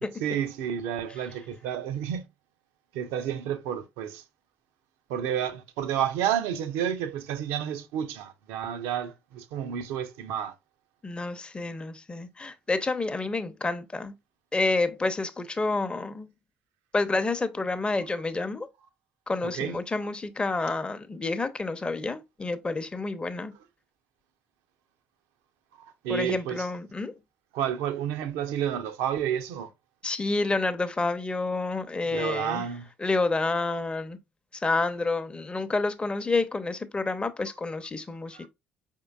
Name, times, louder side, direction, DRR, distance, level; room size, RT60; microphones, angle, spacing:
voice 1, 0.2-2.3 2.9-4.2 5.1-10.5 19.4-19.8 25.8-26.7 27.5-29.7 32.1-32.9 38.3-38.5, right 9 dB, 70° right, 0.6 m, -30 dB
voice 2, 11.0-14.1 14.5-16.3 16.9-18.7 19.3-23.6 26.1-27.2 30.0-32.7 33.0-34.2 34.5-38.5, left 3 dB, 20° left, 0.7 m, -29 dB
5.0 x 3.7 x 2.3 m
hypercardioid pair, 55°, 5 cm